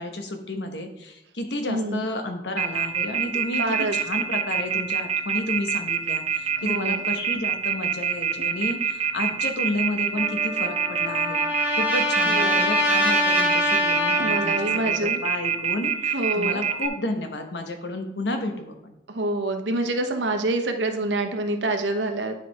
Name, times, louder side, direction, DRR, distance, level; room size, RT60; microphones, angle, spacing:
voice 1, 0.0-11.4 11.7-18.9, left 1 dB, 75° left, 5 dB, 1.1 m, -31 dB
voice 2, 1.7-2.0 3.6-4.0 6.6-7.0 12.2-12.6 14.2-15.2 16.1-16.6 19.1-22.3, right 2 dB, 90° right, 5 dB, 1.0 m, -26 dB
Telephone, 2.6-16.9, right 8 dB, 35° right, 0.6 m, -25 dB
Trumpet, 10.2-15.0, left 1 dB, 10° right, 1.5 m, -24 dB
10.0 x 5.0 x 3.4 m, 0.91 s
head